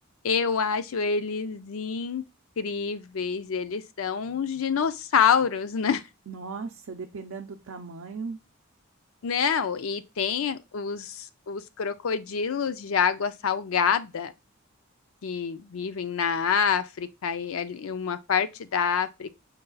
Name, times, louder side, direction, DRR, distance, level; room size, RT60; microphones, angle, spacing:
voice 1, 0.2-2.2 2.6-6.0 9.2-14.3 15.2-19.4, left 6 dB, 75° left, 0.5 m, -27 dB
voice 2, 6.3-8.4, right 4 dB, 75° right, 0.5 m, -37 dB
5.3 x 2.3 x 3.8 m
head